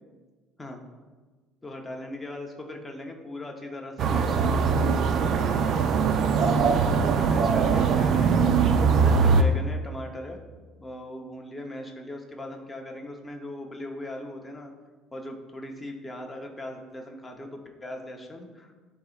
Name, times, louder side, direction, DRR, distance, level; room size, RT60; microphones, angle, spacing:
voice 1, 1.6-4.4 5.5-5.8 7.0-8.5 9.0-10.4 10.8-14.7 15.1-18.8, left 1 dB, 10° left, 1 dB, 0.8 m, -39 dB
sound 1, 4.0-9.4, right 5 dB, 45° right, 0.4 m, -21 dB
12.0 x 4.0 x 2.4 m, 1.4 s
cardioid pair, 145°, 0 cm